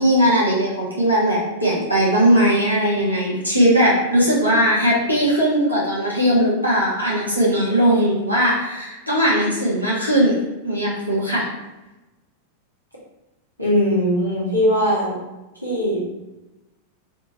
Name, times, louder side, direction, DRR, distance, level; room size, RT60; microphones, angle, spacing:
voice 1, 0.0-11.4, equal, 90° right, -6 dB, 1.4 m, -19 dB
voice 2, 13.6-15.2 15.6-16.2, equal, 90° left, -6 dB, 1.4 m, -20 dB
4.2 x 3.1 x 4.0 m, 1.0 s
figure-of-eight pair, 90°, 0 cm